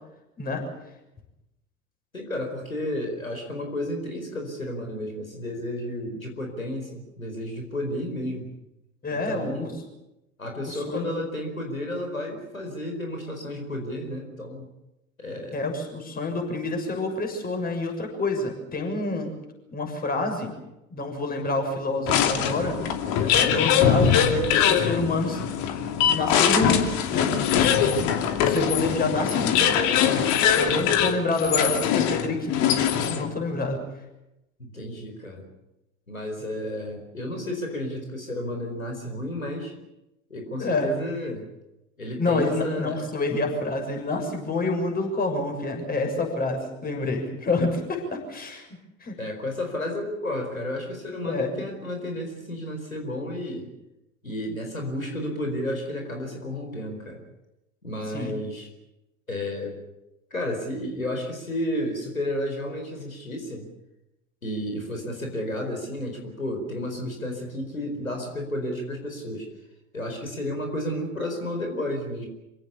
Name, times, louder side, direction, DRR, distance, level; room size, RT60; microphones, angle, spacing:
voice 1, 2.1-8.5 9.3-9.8 10.4-14.7 15.2-15.6 34.6-35.5 36.1-39.7 40.3-41.5 42.0-43.1 49.2-53.7 54.2-57.2 57.8-58.7 59.3-59.8 60.3-63.7 64.4-69.5 69.9-72.3, left 1 dB, 85° left, 3 dB, 4.6 m, -32 dB
voice 2, 9.0-9.7 10.7-11.1 15.5-19.3 19.7-20.5 20.9-22.8 23.2-25.4 26.1-27.3 28.4-29.7 30.5-33.8 40.6-40.9 42.2-48.7 49.0-49.2 51.2-51.5 58.1-58.4, left 3 dB, 20° left, 3 dB, 6.8 m, -28 dB
sound 1, 22.1-33.4, left 8 dB, 45° left, 2.7 m, -22 dB
27.0 x 17.5 x 8.5 m, 0.93 s
figure-of-eight pair, 80°, 40 cm